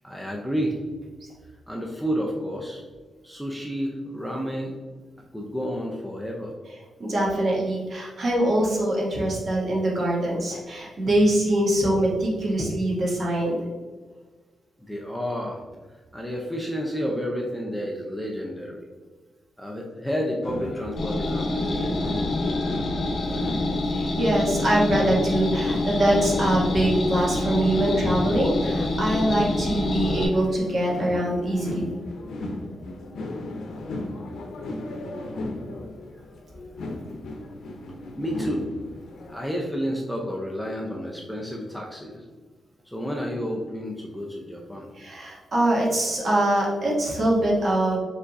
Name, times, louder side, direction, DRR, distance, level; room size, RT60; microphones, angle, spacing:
voice 1, 0.0-0.8 1.7-2.8 3.2-4.7 5.3-6.5 14.9-15.6 16.1-18.9 19.6-22.1 38.2-38.7 39.3-42.2 42.9-44.9, equal, ahead, -1 dB, 0.5 m, -30 dB
voice 2, 7.0-13.5 23.9-31.9 44.9-48.0, right 1 dB, 45° right, -4 dB, 1.4 m, -23 dB
sound 1, 20.4-39.4, left 2 dB, 90° left, 0.7 m, -36 dB
sound 2, 21.0-30.3, left 2 dB, 50° left, 1.1 m, -26 dB
5.7 x 3.6 x 2.6 m, 1.4 s
wide cardioid pair, 145°, 0 cm